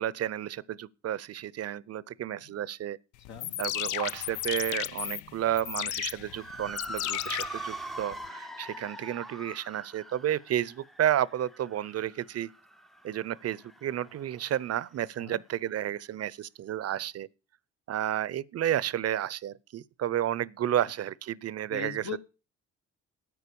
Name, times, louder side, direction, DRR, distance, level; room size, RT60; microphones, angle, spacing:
voice 1, 0.0-3.0 3.6-12.5 13.0-17.3 17.9-22.2, right 11 dB, 55° right, 0.6 m, -31 dB
sound 1, 3.3-8.3, left 14 dB, 85° left, 0.5 m, -35 dB
Motor vehicle (road) / Siren, 6.2-14.8, equal, ahead, 0.5 m, -43 dB
voice 2, 21.7-22.2, left 8 dB, 70° left, 1.4 m, -39 dB
9.4 x 9.3 x 6.9 m
cardioid pair, 90°, 30 cm